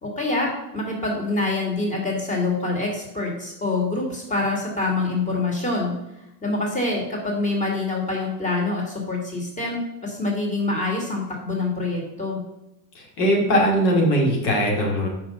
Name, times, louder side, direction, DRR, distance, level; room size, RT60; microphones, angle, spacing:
voice 1, 0.0-5.9 6.4-12.4, left 2 dB, 15° left, -1 dB, 2.2 m, -25 dB
voice 2, 12.9-15.1, equal, 85° left, -1 dB, 2.6 m, -20 dB
5.5 x 5.4 x 6.4 m, 0.90 s
supercardioid pair, 125°, 49 cm